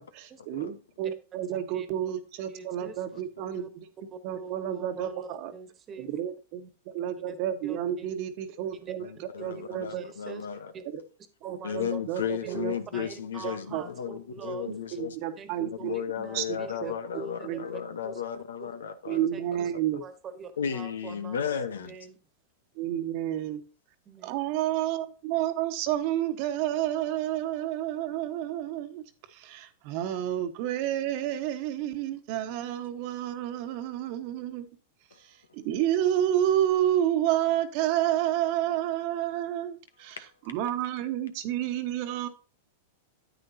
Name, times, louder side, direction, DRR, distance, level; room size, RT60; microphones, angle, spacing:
voice 1, 0.5-3.7 4.2-5.5 6.0-9.1 9.4-10.1 10.9-11.0 11.4-13.0 13.4-13.8 14.7-15.9 16.3-16.9 17.4-17.6 19.1-20.0 22.8-23.6 24.2-34.7 35.2-40.2 40.5-42.3, right 11 dB, 55° right, 1.2 m, -30 dB
voice 2, 1.0-1.4 1.7-2.1 2.5-3.0 3.5-3.7 4.1-6.2 7.3-7.4 7.6-8.1 8.7-8.9 9.4-10.5 10.7-10.8 11.4-12.0 12.4-15.0 15.4-18.2 18.6-18.7 19.1-19.7 20.0-21.4 21.8-22.2 24.1-24.3, right 5 dB, 30° right, 1.4 m, -44 dB
voice 3, 9.0-10.7 11.6-15.2 15.6-19.3 20.6-21.9 35.1-35.2, left 8 dB, 80° left, 1.0 m, -34 dB
9.3 x 9.0 x 2.7 m
hypercardioid pair, 110°, 0 cm